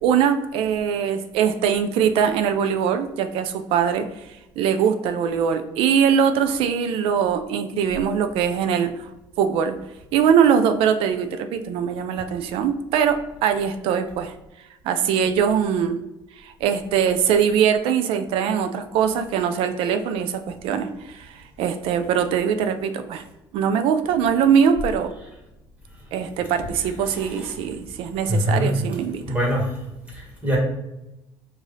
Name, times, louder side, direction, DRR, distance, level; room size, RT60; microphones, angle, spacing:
voice 1, 0.0-9.1 9.4-9.8 10.1-14.3 14.8-16.0 16.4-23.2 23.5-25.1 26.1-29.2, right 7 dB, 75° right, 8 dB, 0.4 m, -22 dB
voice 2, 27.0-27.5 28.3-28.7 29.2-29.7 30.1-30.6, equal, 15° right, -3 dB, 1.6 m, -24 dB
4.8 x 2.6 x 3.9 m, 0.93 s
cardioid pair, 140°, 9 cm